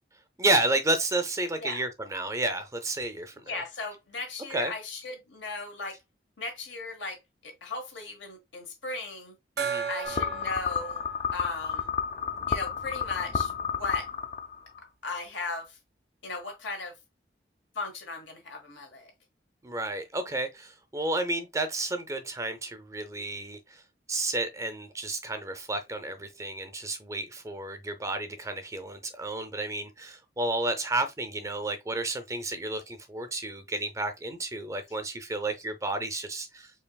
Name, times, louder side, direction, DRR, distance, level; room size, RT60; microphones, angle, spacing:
voice 1, 0.4-3.6 4.5-4.7 9.6-9.9 19.6-23.8 24.1-36.7, right 2 dB, 15° right, 0.4 m, -31 dB
voice 2, 3.4-6.0 6.4-9.3 9.9-11.0 11.3-11.9 12.5-14.1 15.0-15.8 16.2-16.9 17.7-19.1, left 3 dB, 85° left, 1.3 m, -37 dB
Gong, 9.6-12.8, right 6 dB, 60° right, 0.6 m, -37 dB
sound 1, 10.0-14.8, left 7 dB, 40° left, 0.4 m, -31 dB
4.6 x 2.9 x 2.2 m
head